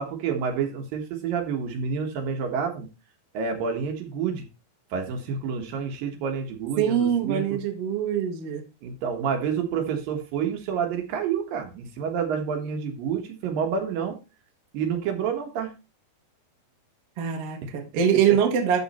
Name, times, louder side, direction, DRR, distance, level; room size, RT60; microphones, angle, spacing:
voice 1, 0.0-2.9 3.3-4.5 4.9-7.6 8.8-14.2 14.7-15.7 17.6-17.8, right 6 dB, 75° right, 3.0 m, -29 dB
voice 2, 6.8-8.6 17.2-18.8, right 8 dB, 55° right, 1.9 m, -23 dB
12.5 x 4.2 x 4.2 m
omnidirectional pair, 4.2 m